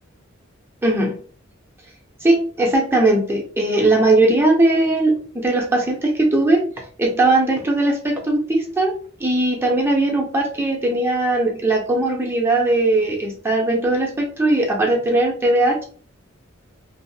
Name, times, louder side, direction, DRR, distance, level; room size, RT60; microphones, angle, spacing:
voice 1, 0.8-1.1 2.2-6.6 7.0-8.9 9.2-15.9, right 2 dB, 10° right, 0 dB, 0.5 m, -19 dB
2.6 x 2.4 x 2.7 m, 0.43 s
head